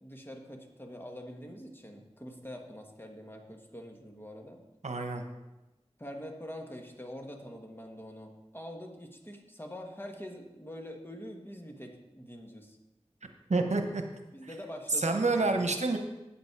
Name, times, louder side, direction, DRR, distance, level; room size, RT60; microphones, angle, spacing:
voice 1, 0.0-4.6 6.0-12.8 14.3-16.0, equal, 20° left, 2 dB, 1.4 m, -45 dB
voice 2, 4.8-5.2 13.5-14.0 15.0-16.0, right 3 dB, 75° right, 5 dB, 1.0 m, -28 dB
8.6 x 8.3 x 4.7 m, 1.0 s
wide cardioid pair, 60°, 12 cm